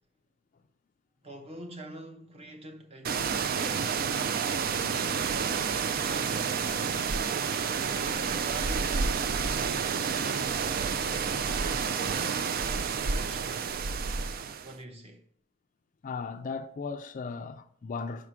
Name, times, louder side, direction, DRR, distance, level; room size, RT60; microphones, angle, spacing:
voice 1, 1.2-5.3 5.9-7.2 7.9-12.3 12.6-13.7 14.6-15.2, right 1 dB, 30° right, 0.9 m, -46 dB
sound 1, 3.0-14.7, right 6 dB, 45° right, 0.4 m, -29 dB
voice 2, 16.0-18.3, left 4 dB, 40° left, 0.4 m, -36 dB
5.0 x 4.8 x 5.8 m
head